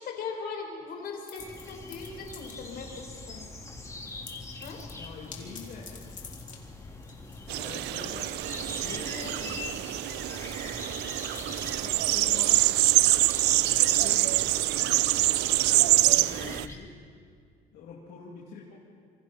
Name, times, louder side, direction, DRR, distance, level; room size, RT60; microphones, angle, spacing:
voice 1, 0.0-3.5 4.6-4.8 9.0-9.4, left 5 dB, 65° left, 2 dB, 4.8 m, -39 dB
sound 1, 1.2-3.0 3.3-3.6 3.9-13.0, left 6 dB, 50° left, 3.3 m, -51 dB
sound 2, 1.4-16.8, left 3 dB, 20° left, 2.7 m, -43 dB
voice 2, 5.0-5.9 6.9-7.1 7.4-8.4 8.7-9.7 11.6-12.6 13.6-16.9 17.7-18.7, left 5 dB, 80° left, -4 dB, 2.7 m, -45 dB
sound 3, 7.5-16.6, right 17 dB, 85° right, 0.5 m, -25 dB
27.0 x 24.0 x 4.3 m, 2.2 s
cardioid pair, 110°, 17 cm